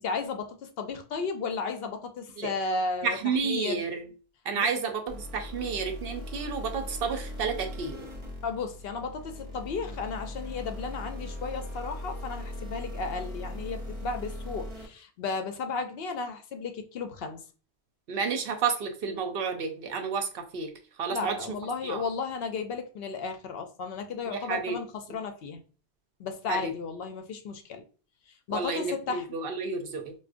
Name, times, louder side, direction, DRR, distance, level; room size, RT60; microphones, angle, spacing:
voice 1, 0.0-3.2 3.4-3.8 4.5-4.9 8.4-17.4 21.1-25.6 26.2-27.8 28.3-29.4, left 4 dB, 70° left, 0.7 m, -34 dB
voice 2, 3.0-4.1 4.5-8.1 18.1-20.7 21.0-21.4 21.8-22.0 24.3-24.8 26.5-26.7 28.5-30.1, right 5 dB, 65° right, 0.7 m, -31 dB
sound 1, 5.1-14.9, left 1 dB, 30° right, 0.8 m, -39 dB
4.7 x 2.1 x 2.4 m
omnidirectional pair, 1.1 m